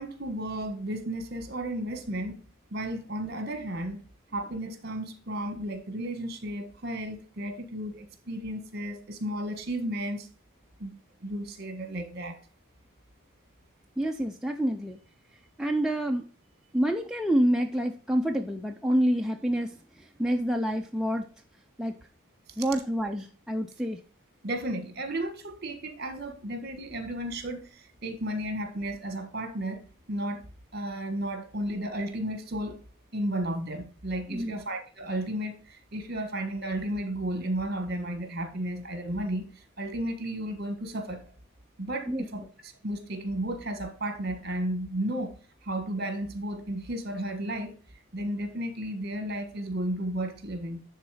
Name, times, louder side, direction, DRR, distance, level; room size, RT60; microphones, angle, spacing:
voice 1, 0.0-2.4 2.7-4.0 4.3-10.3 10.8-10.9 11.2-12.4 24.4-29.8 30.1-30.4 30.7-32.8 33.1-41.3 41.8-45.3 45.6-47.7 48.1-50.8, right 1 dB, 50° right, 1.4 m, -33 dB
voice 2, 14.0-15.0 15.6-16.3 16.7-21.3 21.8-21.9 22.6-24.0 34.3-34.6 42.1-42.3, equal, 5° right, 0.4 m, -27 dB
10.5 x 3.9 x 4.8 m
head